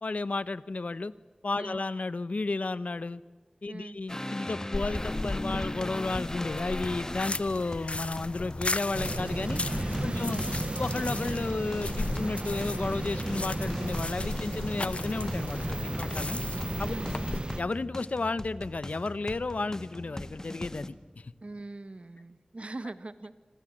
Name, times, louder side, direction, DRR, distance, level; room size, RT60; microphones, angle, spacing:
voice 1, 0.0-1.1 1.4-3.2 3.6-9.6 10.0-10.4 10.8-16.4 16.8-17.0 17.6-21.3, left 3 dB, 85° left, 16 dB, 0.9 m, -33 dB
voice 2, 3.7-4.0 10.0-10.3 16.8-17.1 21.4-23.3, right 2 dB, 60° right, 12 dB, 1.6 m, -41 dB
sound 1, 4.1-20.9, left 1 dB, 25° left, 1.8 m, -39 dB
sound 2, 4.7-17.4, left 2 dB, 60° left, 0.7 m, -36 dB
sound 3, 8.9-17.6, right 2 dB, 45° right, 1.1 m, -34 dB
27.0 x 26.0 x 7.5 m, 1.4 s
wide cardioid pair, 55°, 2 cm